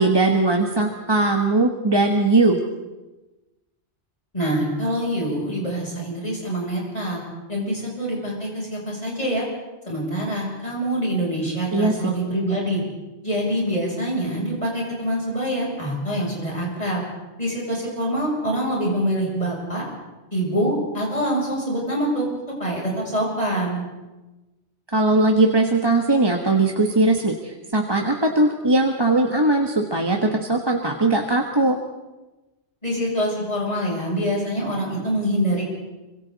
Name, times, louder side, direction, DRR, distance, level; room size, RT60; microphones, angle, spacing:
voice 1, 0.0-2.6 11.7-12.1 24.9-31.8, right 2 dB, 20° right, 2 dB, 1.4 m, -19 dB
voice 2, 4.3-7.2 7.5-9.4 9.9-12.8 13.2-17.0 17.4-19.8 20.3-22.3 22.6-23.8 32.8-35.6, equal, 35° left, -4 dB, 8.0 m, -25 dB
26.0 x 25.5 x 4.1 m, 1.1 s
omnidirectional pair, 1.2 m